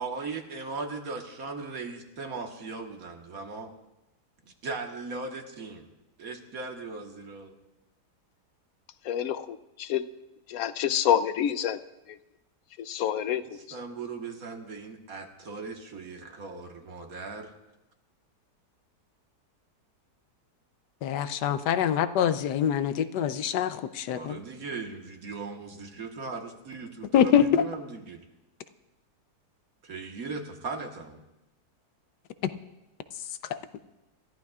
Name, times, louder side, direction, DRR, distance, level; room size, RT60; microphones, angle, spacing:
voice 1, 0.0-3.7 4.6-5.9 6.2-7.6 13.3-17.5 24.1-28.2 29.8-31.2, right 4 dB, 60° right, 1.8 m, -38 dB
voice 2, 9.1-10.1 10.5-11.8 12.8-13.4, left 10 dB, 65° left, 1.0 m, -27 dB
voice 3, 21.0-24.4 27.1-27.6 33.5-33.6, left 9 dB, 85° left, 1.3 m, -24 dB
28.0 x 14.0 x 2.4 m
omnidirectional pair, 1.7 m